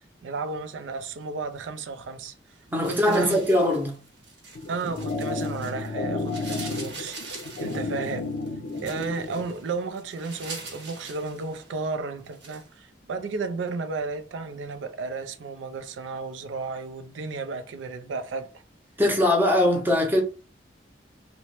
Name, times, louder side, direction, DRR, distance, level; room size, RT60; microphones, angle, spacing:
voice 1, 0.0-2.3 2.9-3.4 4.7-7.2 7.6-8.3 8.8-18.5, right 4 dB, 90° right, 0.4 m, -33 dB
voice 2, 2.7-4.0 19.0-20.2, left 1 dB, 10° right, 0.6 m, -21 dB
sound 1, 2.7-5.9 6.2-11.9 12.2-12.7, right 3 dB, 70° right, 1.0 m, -43 dB
sound 2, 4.5-9.5, left 3 dB, 65° left, 0.4 m, -32 dB
2.9 x 2.0 x 3.0 m
head